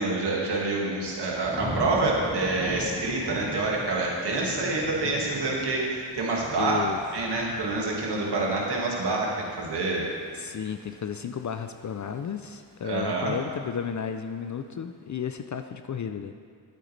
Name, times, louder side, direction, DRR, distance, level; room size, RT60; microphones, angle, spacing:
voice 1, 0.0-10.1 12.8-13.4, right 2 dB, 70° right, -3 dB, 2.1 m, -27 dB
Thunder / Rain, 1.0-11.9 12.3-12.8, equal, 10° left, 2.7 m, -40 dB
voice 2, 6.6-7.0 10.3-16.3, left 7 dB, 45° left, 8 dB, 0.5 m, -33 dB
12.0 x 8.8 x 3.3 m, 2.3 s
cardioid pair, 85°, 42 cm